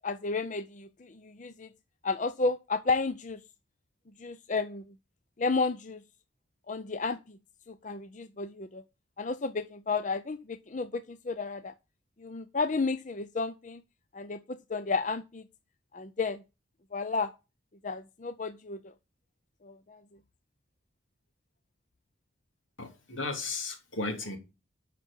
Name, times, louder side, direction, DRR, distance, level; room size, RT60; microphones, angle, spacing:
voice 1, 0.0-1.7 2.0-3.4 4.2-4.9 5.4-6.0 6.7-7.4 7.7-8.8 9.2-11.7 12.2-13.8 14.1-15.4 15.9-16.4 16.9-17.3 17.8-18.8 19.6-20.0, left 4 dB, 40° left, 0.5 m, -32 dB
voice 2, 22.8-24.4, left 3 dB, 80° left, 3.3 m, -35 dB
12.5 x 5.9 x 5.4 m
head